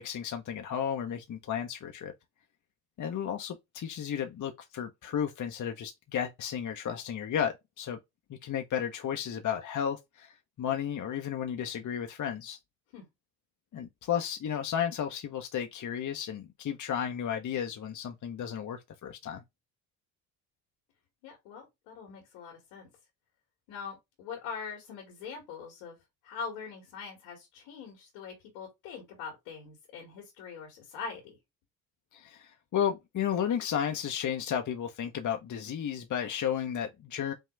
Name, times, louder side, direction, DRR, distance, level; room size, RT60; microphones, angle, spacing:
voice 1, 0.0-2.1 3.0-8.0 8.3-12.6 13.7-19.4 32.1-37.3, left 9 dB, 50° left, 0.9 m, -33 dB
voice 2, 21.2-22.9 23.7-26.0 26.2-31.4, left 5 dB, 85° left, 2.2 m, -43 dB
5.5 x 2.3 x 3.2 m
supercardioid pair, 60°, 39 cm